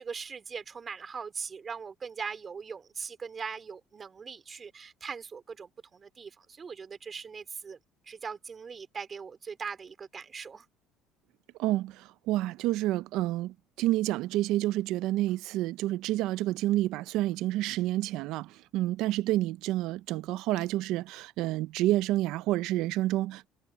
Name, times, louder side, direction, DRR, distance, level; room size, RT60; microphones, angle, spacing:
voice 1, 0.0-7.8 8.1-10.6, right 5 dB, 30° right, 4.2 m, -40 dB
voice 2, 11.6-23.5, right 15 dB, 75° right, 0.6 m, -29 dB
cardioid pair, 110°, 0 cm